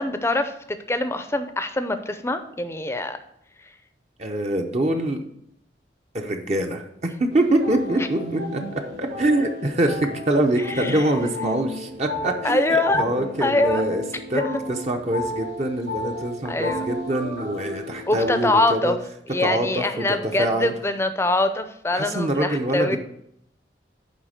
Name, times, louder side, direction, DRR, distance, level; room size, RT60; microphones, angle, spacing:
voice 1, 0.0-3.2 10.7-11.0 12.4-13.0 13.4-13.8 14.3-14.6 16.5-16.9 18.1-19.0 19.3-23.0, left 2 dB, 15° left, 9 dB, 0.5 m, -24 dB
voice 2, 4.2-5.2 6.1-14.0 14.3-14.4 14.7-19.0 19.4-20.7 21.9-23.0, right 1 dB, 35° right, 4 dB, 0.7 m, -24 dB
sound 1, 7.3-18.4, left 1 dB, 90° right, 3.1 m, -33 dB
9.2 x 3.6 x 6.4 m, 0.74 s
head